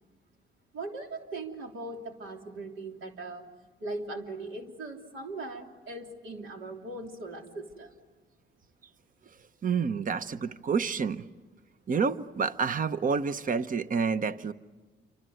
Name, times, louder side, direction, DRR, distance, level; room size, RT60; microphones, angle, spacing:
voice 1, 0.7-3.5 3.8-7.9, right 2 dB, 80° right, 2 dB, 3.3 m, -39 dB
voice 2, 9.6-11.2 11.9-14.5, right 5 dB, 45° right, 13 dB, 1.0 m, -28 dB
28.5 x 25.5 x 7.9 m, 1.3 s
cardioid pair, 90°, 20 cm